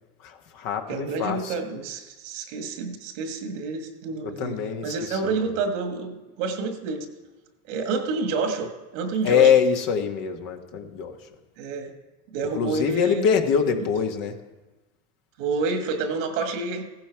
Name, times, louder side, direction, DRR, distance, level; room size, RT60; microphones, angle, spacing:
voice 1, 0.2-1.5 4.2-5.4 9.2-11.3 12.5-14.4, left 7 dB, 60° left, 4 dB, 1.6 m, -24 dB
voice 2, 0.9-4.6 4.8-7.1 7.6-9.5 11.6-11.9 12.3-13.3 15.4-16.8, right 4 dB, 80° right, 6 dB, 1.8 m, -28 dB
15.5 x 11.5 x 4.6 m, 1.1 s
supercardioid pair, 95°, 37 cm